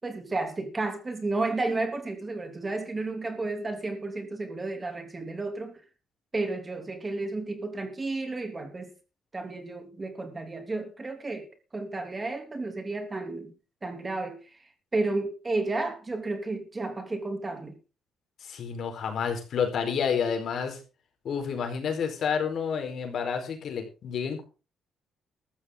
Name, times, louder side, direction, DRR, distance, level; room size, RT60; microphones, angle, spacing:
voice 1, 0.0-5.8 6.3-8.9 9.3-13.5 13.8-17.8, right 2 dB, 25° right, 3.1 m, -32 dB
voice 2, 18.4-20.8 21.2-24.4, left 6 dB, 65° left, 4.6 m, -29 dB
14.0 x 13.5 x 4.0 m
cardioid pair, 90°, 0 cm